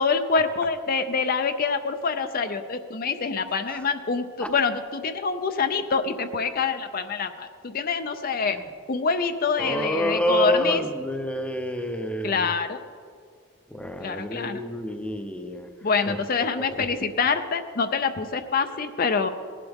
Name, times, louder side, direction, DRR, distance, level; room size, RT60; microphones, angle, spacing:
voice 1, 0.0-8.6 8.9-10.8 12.2-12.8 14.0-14.6 15.8-19.3, left 5 dB, 45° left, 8 dB, 0.5 m, -26 dB
voice 2, 9.6-12.5 13.7-15.7 16.1-16.2 16.5-16.9, equal, 5° left, 6 dB, 0.7 m, -28 dB
18.5 x 11.5 x 3.5 m, 2.1 s
head